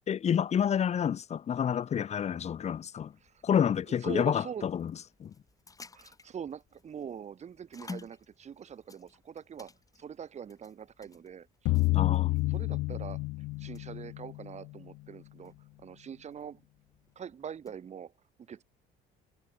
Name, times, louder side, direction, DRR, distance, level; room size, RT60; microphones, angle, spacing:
voice 1, 0.1-3.1 3.4-4.9 5.2-5.3 11.9-12.4, left 8 dB, 40° left, 1.0 m, -29 dB
sound 1, 3.1-17.9, left 3 dB, 20° left, 5.2 m, -54 dB
voice 2, 4.0-4.7 5.9-11.7 12.5-13.2 13.6-15.5 15.8-16.6 17.2-18.1 18.4-18.6, right 8 dB, 40° right, 2.7 m, -43 dB
sound 2, 11.7-14.8, left 22 dB, 90° left, 0.4 m, -29 dB
cardioid pair, 110°, 17 cm